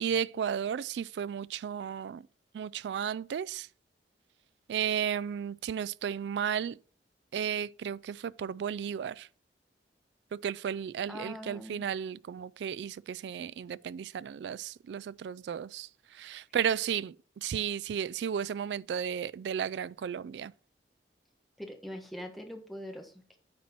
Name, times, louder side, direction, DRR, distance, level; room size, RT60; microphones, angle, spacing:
voice 1, 0.0-2.2 2.5-3.7 4.7-6.8 7.3-9.3 10.3-20.5, right 8 dB, 70° right, 0.3 m, -34 dB
voice 2, 11.1-11.8 21.6-23.4, equal, ahead, 1.4 m, -42 dB
9.4 x 4.5 x 5.9 m
head